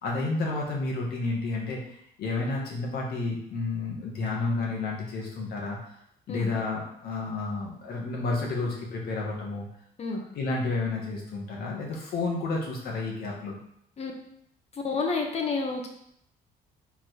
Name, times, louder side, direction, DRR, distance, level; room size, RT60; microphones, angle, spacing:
voice 1, 0.0-1.8 2.2-5.8 6.3-9.7 10.3-13.6, left 3 dB, 65° left, -2 dB, 2.1 m, -31 dB
voice 2, 14.7-15.9, left 4 dB, 40° left, 2 dB, 1.4 m, -29 dB
4.9 x 4.6 x 4.7 m, 0.71 s
cardioid pair, 110°, 17 cm